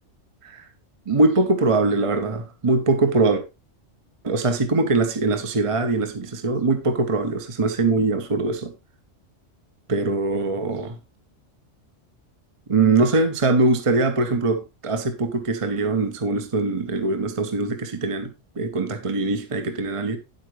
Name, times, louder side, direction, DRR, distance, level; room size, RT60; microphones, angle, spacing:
voice 1, 1.1-3.4 4.2-8.7 9.9-11.0 12.7-18.3 18.6-20.2, right 3 dB, 30° right, 0.9 m, -22 dB
9.4 x 8.1 x 3.2 m
omnidirectional pair, 1.2 m